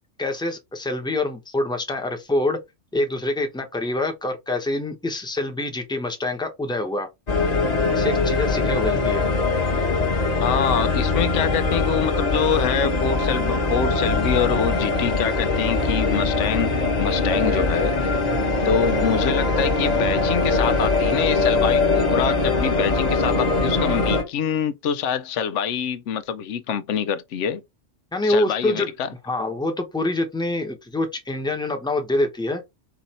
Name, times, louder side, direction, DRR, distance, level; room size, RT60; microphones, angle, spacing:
voice 1, 0.2-2.6 2.9-7.1 7.9-9.2 28.1-28.9 29.2-32.6, left 2 dB, 5° left, 0.8 m, -25 dB
sound 1, 7.3-24.2, left 3 dB, 35° left, 1.2 m, -22 dB
voice 2, 10.4-16.7 17.0-18.1 18.6-27.6 28.2-29.1, left 8 dB, 90° left, 0.9 m, -25 dB
4.8 x 2.6 x 4.2 m
omnidirectional pair, 1.2 m